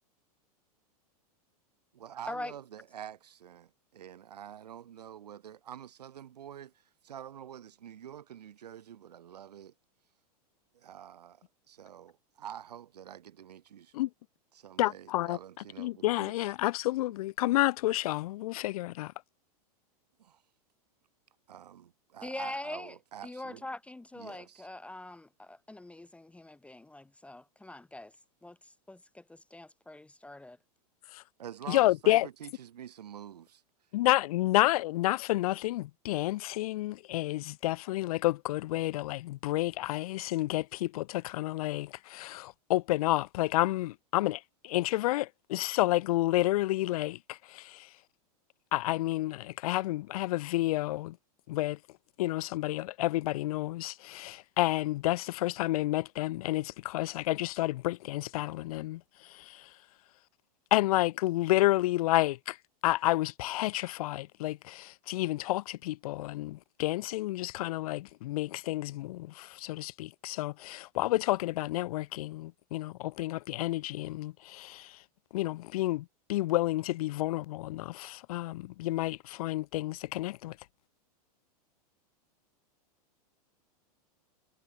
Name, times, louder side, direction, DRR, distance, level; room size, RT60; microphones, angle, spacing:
voice 1, 1.9-9.7 10.7-14.0 14.5-16.5 20.2-20.4 21.5-23.7 24.2-24.7 31.4-33.6, right 10 dB, 85° right, 5.9 m, -47 dB
voice 2, 14.8-15.4 15.8-19.1 31.1-31.2 31.7-32.3 33.9-47.9 48.7-51.2 51.5-51.8 52.2-59.7 60.7-62.6 62.8-75.0 75.3-80.6, left 17 dB, 65° left, 0.9 m, -30 dB
voice 3, 22.2-22.9 23.2-28.1 28.4-30.6, left 2 dB, 5° left, 0.9 m, -43 dB
hypercardioid pair, 120°, 20 cm